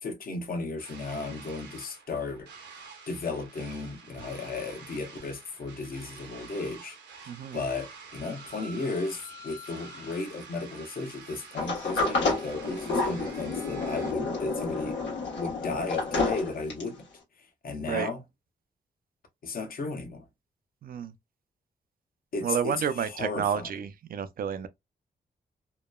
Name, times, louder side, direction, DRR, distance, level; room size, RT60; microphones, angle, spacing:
voice 1, 0.0-2.5 3.1-7.0 7.5-15.0 15.3-17.1 17.4-18.2 19.4-20.3 22.3-23.7, left 3 dB, 55° left, 0.8 m, -34 dB
sound 1, 0.8-14.1, right 4 dB, 80° right, 0.9 m, -48 dB
voice 2, 7.3-7.6 17.9-18.1 20.8-21.1 22.4-24.7, right 8 dB, 55° right, 0.4 m, -30 dB
Sliding door, 11.6-17.0, left 3 dB, 85° left, 1.1 m, -30 dB
2.9 x 2.1 x 2.2 m
cardioid pair, 75°, 18 cm